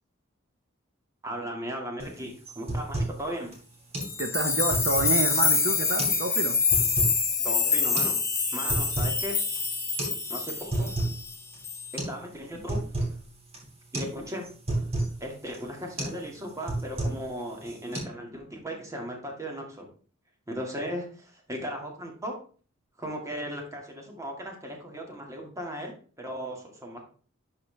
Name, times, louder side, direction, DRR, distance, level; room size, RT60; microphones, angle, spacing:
voice 1, 1.2-3.5 7.4-8.2 8.5-9.4 10.3-10.9 11.9-12.8 13.9-14.5 15.2-19.9 20.5-22.4 23.0-27.0, equal, 15° right, 1 dB, 2.1 m, -37 dB
sound 1, 2.0-2.1 2.5-3.2 3.5-3.6 3.9-4.1 4.5-5.3 5.8-6.2 6.5-7.2 8.0-8.1 8.5-9.2 9.5-9.6 10.0-10.2 10.5-11.2 11.5-11.6 12.0-12.2 12.5-13.2 13.5-13.7 13.9-14.1 14.4-15.1 15.5-15.7 16.0-16.2 16.5-17.3 17.6-18.0, right 2 dB, 35° right, 3.5 m, -31 dB
sound 2, 4.0-11.4 11.6-12.0, left 5 dB, 15° left, 1.4 m, -26 dB
voice 2, 4.2-6.6, right 3 dB, 60° right, 6 dB, 0.8 m, -29 dB
11.5 x 4.9 x 3.4 m, 0.40 s
head